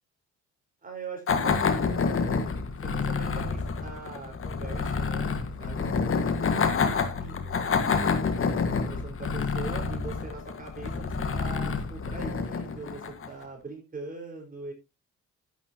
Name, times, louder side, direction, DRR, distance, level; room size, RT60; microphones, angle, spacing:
voice 1, 0.8-2.5 2.8-8.0 8.7-14.7, right 4 dB, 30° right, 1 dB, 4.9 m, -42 dB
sound 1, 1.3-13.4, left 5 dB, 45° left, 1.8 m, -28 dB
12.0 x 9.4 x 2.9 m, 0.23 s
cardioid pair, 90°, 30 cm